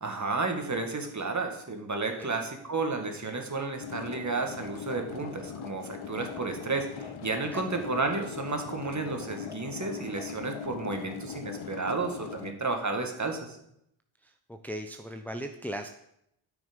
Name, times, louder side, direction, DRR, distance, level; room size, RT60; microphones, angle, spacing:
voice 1, 0.0-13.6, right 3 dB, 35° right, 4 dB, 2.1 m, -32 dB
sound 1, 3.8-12.5, left 7 dB, 70° left, 0.9 m, -40 dB
voice 2, 14.2-15.9, equal, 5° left, 5 dB, 0.8 m, -38 dB
9.2 x 6.2 x 5.4 m, 0.76 s
supercardioid pair, 45°, 49 cm